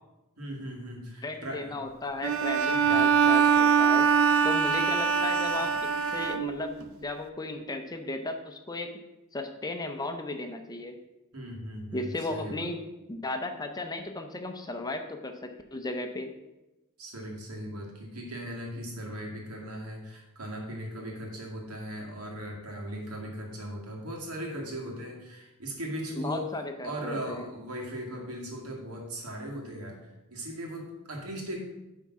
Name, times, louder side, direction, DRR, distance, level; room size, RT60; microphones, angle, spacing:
voice 1, 0.4-1.8 2.7-3.1 11.3-12.7 17.0-26.5 26.8-31.6, equal, 85° right, -1 dB, 2.0 m, -38 dB
voice 2, 1.2-4.1 4.4-8.9 9.3-11.0 11.9-12.8 13.1-16.3 26.1-27.5, left 2 dB, 20° left, 6 dB, 0.6 m, -35 dB
Bowed string instrument, 2.2-6.8, right 6 dB, 65° right, 0.5 m, -23 dB
9.6 x 3.7 x 5.9 m, 0.99 s
head